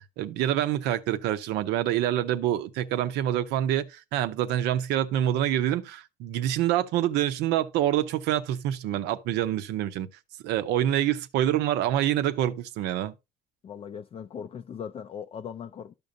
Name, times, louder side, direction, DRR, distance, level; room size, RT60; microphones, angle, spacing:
voice 1, 0.0-10.1 10.4-13.1, right 12 dB, 90° right, 0.6 m, -26 dB
voice 2, 13.6-15.9, left 7 dB, 35° left, 0.3 m, -39 dB
13.0 x 5.2 x 2.6 m
cardioid pair, 110°, 17 cm